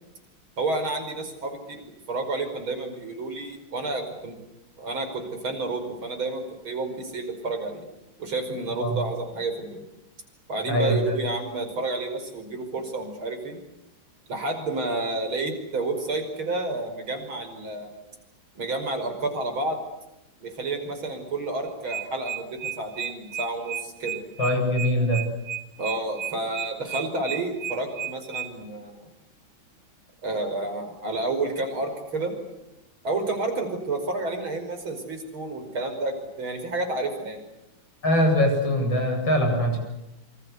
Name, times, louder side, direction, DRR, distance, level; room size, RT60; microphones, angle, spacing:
voice 1, 0.6-4.4 4.8-7.9 8.2-9.8 10.5-13.6 14.3-17.9 18.6-19.8 20.4-24.2 25.8-28.9 30.2-32.4 33.0-37.4, right 2 dB, 80° right, 6 dB, 6.1 m, -30 dB
voice 2, 10.7-11.2 24.4-25.2 38.0-39.8, equal, 65° left, 3 dB, 9.0 m, -22 dB
sound 1, 21.7-28.5, right 10 dB, 20° right, 6.0 m, -32 dB
28.0 x 26.0 x 8.2 m, 0.89 s
omnidirectional pair, 2.2 m